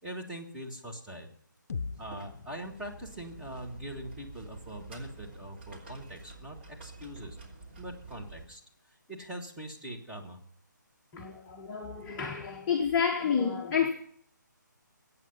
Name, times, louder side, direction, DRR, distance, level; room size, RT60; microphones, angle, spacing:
voice 1, 0.0-1.3 2.0-7.4 7.8-8.6 8.9-10.4, right 1 dB, 5° right, 1.7 m, -42 dB
sound 1, 1.7-5.7, left 5 dB, 50° left, 0.7 m, -44 dB
sound 2, 1.9-8.5, right 3 dB, 35° right, 3.1 m, -48 dB
voice 2, 11.1-13.9, left 7 dB, 15° left, 0.9 m, -29 dB
22.5 x 8.7 x 5.5 m
figure-of-eight pair, 145°, 10 cm